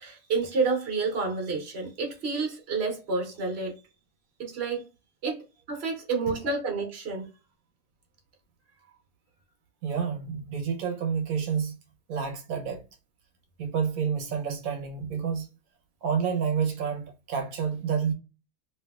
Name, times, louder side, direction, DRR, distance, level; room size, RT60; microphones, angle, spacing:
voice 1, 0.0-3.8 4.4-4.8 5.2-7.3, right 4 dB, 50° right, 1.3 m, -29 dB
voice 2, 9.8-11.8 12.1-12.8 13.6-15.5 16.0-18.1, right 6 dB, 85° right, 1.1 m, -29 dB
3.2 x 2.8 x 2.3 m
omnidirectional pair, 1.4 m